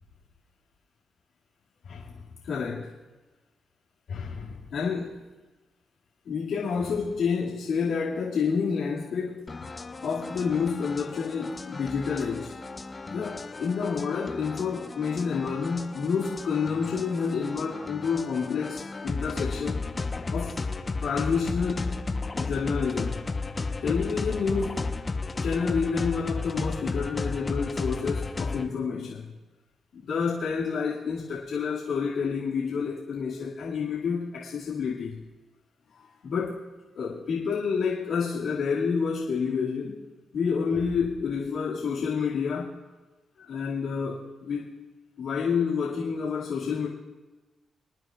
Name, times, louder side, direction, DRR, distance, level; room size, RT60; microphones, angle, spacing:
voice 1, 1.8-2.9 4.1-5.2 6.2-9.5 10.0-12.5 13.1-19.8 20.3-20.6 21.0-22.0 22.4-23.2 23.8-24.9 25.4-29.3 29.9-35.2 35.9-36.6 36.9-40.0 40.3-42.7 43.4-44.7 45.2-46.9, left 5 dB, 75° left, -6 dB, 2.5 m, -29 dB
sound 1, 9.5-28.7, left 3 dB, 35° left, 1.1 m, -34 dB
27.0 x 9.7 x 2.5 m, 1.2 s
supercardioid pair, 55°, 0 cm